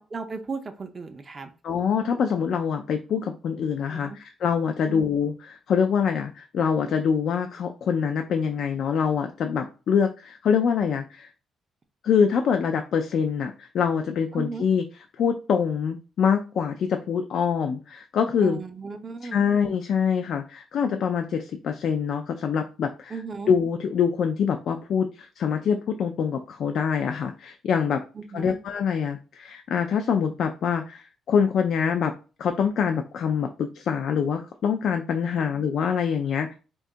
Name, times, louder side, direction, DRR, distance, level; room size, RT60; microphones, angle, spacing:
voice 1, 0.0-1.5 3.9-4.2 4.8-5.0 14.3-14.7 18.4-19.4 23.1-23.5 28.1-28.6, right 4 dB, 35° right, 6 dB, 0.4 m, -35 dB
voice 2, 1.6-4.1 4.4-11.3 12.0-14.8 15.2-18.6 19.3-23.1 23.5-28.0 28.3-32.1 32.4-36.5, left 7 dB, 65° left, 5 dB, 0.3 m, -25 dB
2.6 x 2.2 x 3.7 m, 0.34 s
cardioid pair, 90°, 0 cm